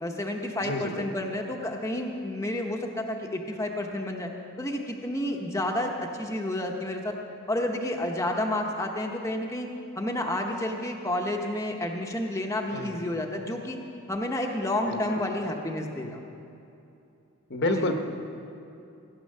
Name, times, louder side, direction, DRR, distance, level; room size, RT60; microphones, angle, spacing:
voice 1, 0.0-4.3 4.6-7.2 7.5-13.8 14.1-16.2 17.7-18.0, left 1 dB, 15° left, 1 dB, 0.9 m, -30 dB
voice 2, 0.6-1.1 12.7-13.0 14.9-15.2 17.5-18.0, left 2 dB, 50° left, 5 dB, 1.0 m, -29 dB
16.5 x 9.8 x 6.6 m, 2.7 s
head